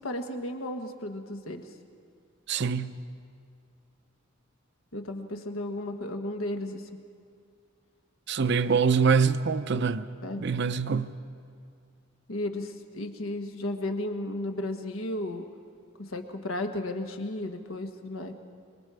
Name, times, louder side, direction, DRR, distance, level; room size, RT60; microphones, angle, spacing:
voice 1, 0.0-1.6 4.9-6.8 10.2-10.4 12.3-15.4 16.0-18.3, left 1 dB, 75° left, 1.4 m, -34 dB
voice 2, 2.5-3.0 8.3-10.1 10.4-11.2, right 5 dB, 55° right, 0.6 m, -24 dB
25.5 x 23.0 x 4.8 m
head